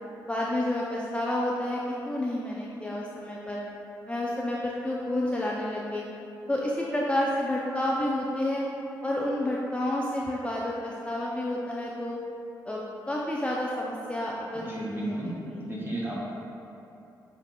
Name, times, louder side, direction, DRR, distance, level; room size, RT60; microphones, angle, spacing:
voice 1, 0.2-3.6 4.1-6.0 6.5-8.6 9.0-12.2 12.7-15.6, left 1 dB, 15° left, -4 dB, 0.5 m, -30 dB
voice 2, 14.5-16.3, right 1 dB, 25° right, -6 dB, 1.3 m, -34 dB
7.1 x 2.7 x 2.2 m, 2.9 s
supercardioid pair, 45°, 8 cm